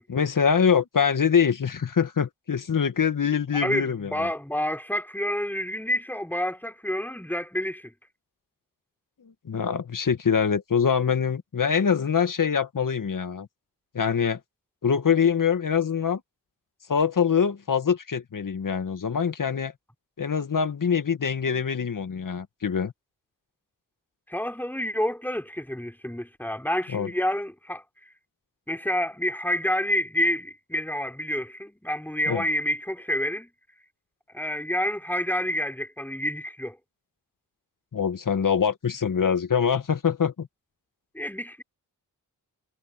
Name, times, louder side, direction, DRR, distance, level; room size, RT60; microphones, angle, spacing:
voice 1, 0.1-4.3 9.5-13.5 13.9-14.4 14.8-16.2 16.9-19.7 20.2-22.9 26.9-27.1 32.3-32.4 37.9-40.5, left 7 dB, 55° left, 2.1 m, -24 dB
voice 2, 3.6-7.9 24.3-27.8 28.7-33.5 34.3-36.8 41.1-41.6, equal, 5° left, 3.8 m, -28 dB
cardioid pair, 55°, 39 cm